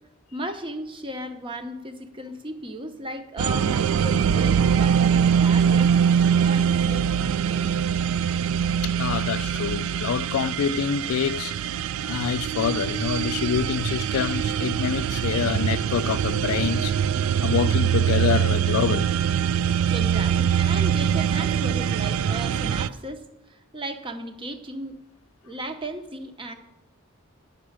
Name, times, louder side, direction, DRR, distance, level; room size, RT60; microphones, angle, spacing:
voice 1, 0.3-5.9 6.4-7.6 19.9-25.0 25.4-26.5, right 1 dB, 25° right, 0.8 m, -36 dB
sound 1, 3.4-22.9, right 8 dB, 75° right, 0.3 m, -23 dB
voice 2, 8.8-11.5 12.0-16.9 17.4-19.2, left 8 dB, 90° left, 0.3 m, -26 dB
9.5 x 6.2 x 8.6 m
head